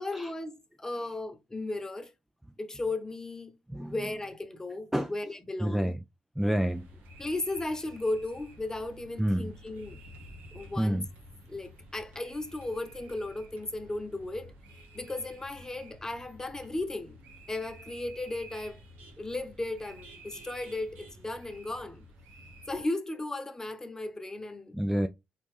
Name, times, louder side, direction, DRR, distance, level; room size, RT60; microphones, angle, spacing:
voice 1, 0.0-2.1 2.6-6.0 7.2-10.0 10.5-11.0 11.5-14.5 14.9-17.2 17.5-18.8 19.2-22.1 22.7-24.8, left 2 dB, 20° left, 1.0 m, -35 dB
voice 2, 5.6-6.0 6.4-6.9 9.2-9.5 10.8-11.1 24.7-25.1, equal, 5° right, 0.4 m, -28 dB
sound 1, 6.6-22.8, right 1 dB, 75° right, 1.2 m, -51 dB
4.1 x 3.0 x 3.3 m
hypercardioid pair, 50°, 3 cm